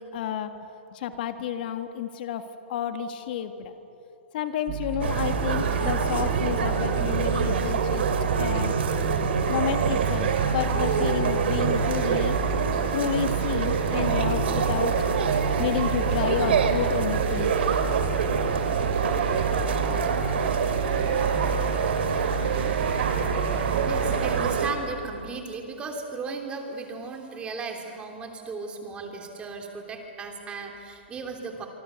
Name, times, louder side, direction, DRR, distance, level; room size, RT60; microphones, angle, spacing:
voice 1, 0.1-0.5 0.9-3.7 4.3-8.1 8.4-8.7 9.5-12.4 12.9-15.0 15.6-17.5, left 9 dB, 50° left, 8 dB, 1.5 m, -30 dB
sound 1, 4.7-24.4, right 4 dB, 40° right, 6.1 m, -32 dB
sound 2, 5.0-24.7, right 6 dB, 70° right, 2.7 m, -25 dB
voice 2, 23.9-31.7, right 4 dB, 15° right, 3 dB, 3.0 m, -36 dB
25.5 x 25.5 x 7.0 m, 2.8 s
hypercardioid pair, 145°, 6 cm